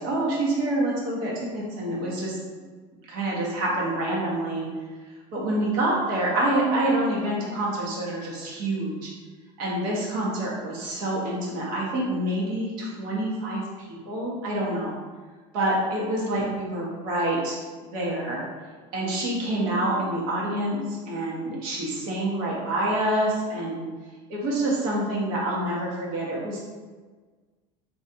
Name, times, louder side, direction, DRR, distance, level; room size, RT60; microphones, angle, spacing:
voice 1, 0.0-2.4 3.1-4.6 5.3-9.1 9.6-13.6 14.1-15.0 15.5-17.6 17.8-18.4 18.9-23.8 24.3-26.6, right 1 dB, 55° right, -4 dB, 1.2 m, -27 dB
3.8 x 3.1 x 2.8 m, 1.4 s
cardioid pair, 160°, 17 cm